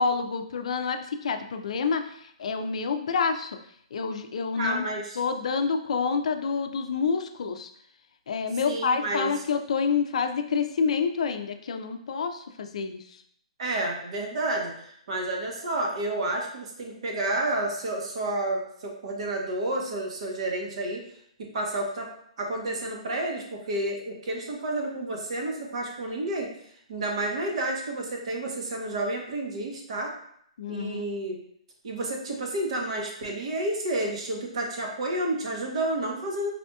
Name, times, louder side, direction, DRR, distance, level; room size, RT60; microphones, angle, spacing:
voice 1, 0.0-3.6 3.9-4.9 5.2-7.7 8.3-13.0 30.6-31.1, left 5 dB, 70° left, 7 dB, 0.4 m, -28 dB
voice 2, 4.5-5.2 8.6-9.3 13.6-21.0 21.4-22.1 22.4-26.5 26.9-30.1 30.7-31.4 31.8-36.5, right 1 dB, 60° right, 1 dB, 0.9 m, -30 dB
4.1 x 2.8 x 2.2 m, 0.68 s
hypercardioid pair, 160°, 4 cm